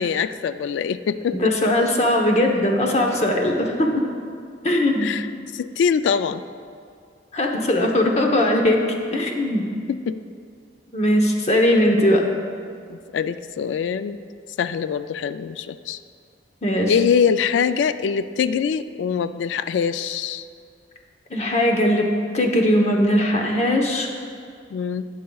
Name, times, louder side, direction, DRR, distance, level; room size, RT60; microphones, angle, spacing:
voice 1, 0.0-1.5 5.0-6.4 10.1-10.2 12.9-14.2 14.6-16.0 16.9-20.5 24.7-25.1, left 7 dB, 85° left, 12 dB, 0.3 m, -23 dB
voice 2, 1.4-3.9 4.6-5.1 7.3-8.8 9.1-9.6 10.9-12.2 16.6-16.9 21.3-22.1 22.3-24.1, left 1 dB, 35° left, 1 dB, 0.9 m, -19 dB
18.5 x 6.6 x 2.3 m, 2.2 s
head